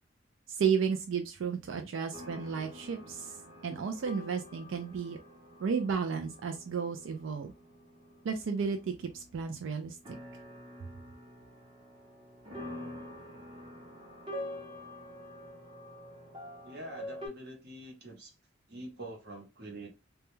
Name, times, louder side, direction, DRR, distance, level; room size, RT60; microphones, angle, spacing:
voice 1, 0.5-3.3 3.6-5.2 5.6-7.5 8.2-10.0, right 6 dB, 75° right, 0.4 m, -33 dB
sound 1, 2.1-17.3, left 1 dB, 25° right, 0.7 m, -47 dB
voice 2, 16.6-18.3 18.7-19.9, right 1 dB, 55° right, 0.9 m, -45 dB
2.2 x 2.1 x 3.0 m
head